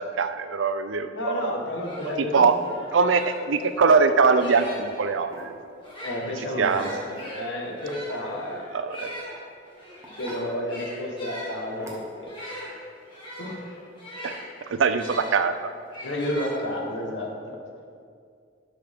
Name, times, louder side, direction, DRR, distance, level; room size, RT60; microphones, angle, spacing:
voice 1, 0.0-1.5 2.2-2.6 2.9-5.5 6.6-7.0 8.7-9.1 14.2-14.4 14.7-15.7, right 5 dB, 85° right, 10 dB, 0.5 m, -22 dB
voice 2, 1.1-2.7 6.0-6.9 7.3-8.7 10.2-12.3 13.4-13.6 16.0-17.6, left 1 dB, 70° left, 0 dB, 1.4 m, -31 dB
sound 1, 1.4-1.5 1.8-5.0 5.7-15.4 15.9-17.0, left 1 dB, 25° left, 2.0 m, -40 dB
sound 2, 2.4-2.5 2.9-3.1 4.2-4.4 5.2-5.8 6.6-7.3 9.0-9.2 10.0-10.5 11.4-11.5 11.8-12.3, right 1 dB, 15° right, 1.3 m, -43 dB
11.5 x 6.0 x 3.6 m, 2.3 s
head